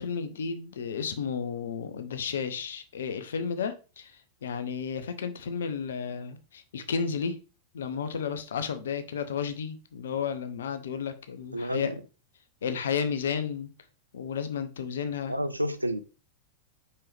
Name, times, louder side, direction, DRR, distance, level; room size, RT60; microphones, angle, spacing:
voice 1, 0.0-7.4 7.7-11.9 12.6-13.7 14.1-15.4, left 6 dB, 65° left, 0.8 m, -32 dB
voice 2, 11.5-11.9 15.3-16.0, equal, 85° right, 0.5 m, -30 dB
5.6 x 5.4 x 3.4 m
figure-of-eight pair, 90°, 0 cm